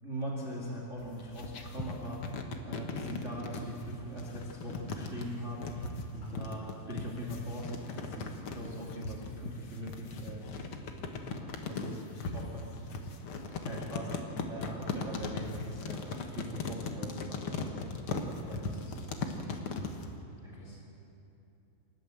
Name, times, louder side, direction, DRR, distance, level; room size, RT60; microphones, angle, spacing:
voice 1, 0.0-10.5 11.2-13.0 13.5-18.7 20.3-20.7, right 1 dB, 25° right, -2 dB, 2.0 m, -41 dB
sound 1, 1.0-20.1, left 4 dB, 90° left, 1.2 m, -38 dB
voice 2, 3.0-3.3 6.2-6.5 12.1-12.3 18.5-19.9 20.2-20.8, equal, 60° left, -3 dB, 7.3 m, -51 dB
28.0 x 13.0 x 7.7 m, 2.8 s
omnidirectional pair, 4.5 m